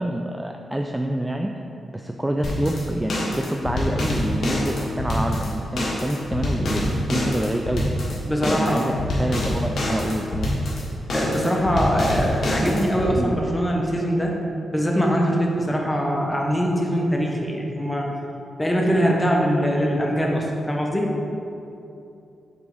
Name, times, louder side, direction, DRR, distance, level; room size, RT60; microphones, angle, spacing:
voice 1, 0.0-1.6 1.9-7.8 8.4-10.5 12.6-12.9 13.2-13.4, right 1 dB, 10° right, 3 dB, 0.3 m, -27 dB
sound 1, 2.4-13.1, left 1 dB, 65° left, 1.4 m, -26 dB
voice 2, 8.2-8.9 11.1-14.3 14.7-18.1 18.6-21.2, equal, 10° left, -1 dB, 1.1 m, -22 dB
6.1 x 3.6 x 5.3 m, 2.7 s
cardioid pair, 80°, 0 cm